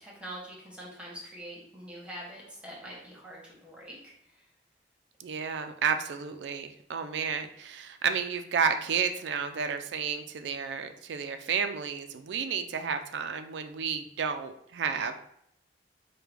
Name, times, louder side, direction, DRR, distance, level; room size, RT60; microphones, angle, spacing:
voice 1, 0.0-4.5, right 1 dB, 5° right, -4 dB, 1.1 m, -44 dB
voice 2, 5.2-15.1, right 6 dB, 70° right, 8 dB, 0.4 m, -31 dB
4.8 x 2.2 x 3.4 m, 0.73 s
head